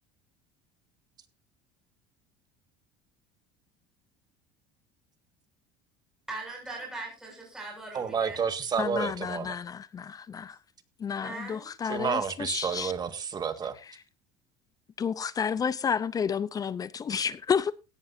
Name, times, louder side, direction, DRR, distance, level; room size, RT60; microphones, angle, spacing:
voice 1, 6.3-8.4 11.2-11.7, right 3 dB, 5° right, 7.2 m, -40 dB
voice 2, 7.9-9.6 11.9-13.8, right 6 dB, 30° right, 1.8 m, -30 dB
voice 3, 8.8-10.6 11.0-12.9 15.0-17.7, left 7 dB, 30° left, 0.6 m, -30 dB
16.5 x 11.0 x 2.7 m
supercardioid pair, 115°, 13 cm